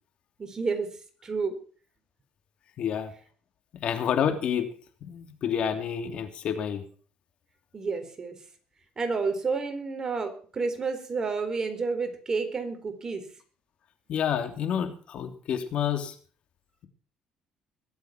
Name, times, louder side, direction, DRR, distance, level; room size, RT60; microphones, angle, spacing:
voice 1, 0.4-0.9 1.2-1.6 7.7-8.4 9.0-13.2, right 4 dB, 30° right, 7 dB, 4.1 m, -30 dB
voice 2, 2.8-3.1 3.7-4.7 5.0-6.8 14.1-16.1, left 8 dB, 60° left, 8 dB, 3.1 m, -29 dB
21.5 x 8.3 x 6.0 m, 0.41 s
cardioid pair, 95°, 2 cm